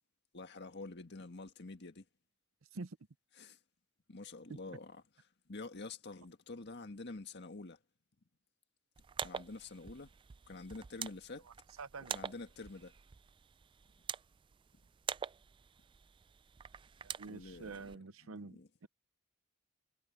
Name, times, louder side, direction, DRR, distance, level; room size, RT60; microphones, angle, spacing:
voice 1, 0.3-2.0 3.4-3.6 4.1-5.0 5.5-7.8 9.2-10.1 10.5-11.5 12.1-12.9 17.3-17.7 18.2-18.7, left 3 dB, 55° left, 1.7 m, -47 dB
sound 1, 9.0-17.9, right 7 dB, 25° right, 0.3 m, -46 dB
voice 2, 11.8-12.2 17.0-18.9, right 3 dB, 80° right, 0.8 m, -47 dB
head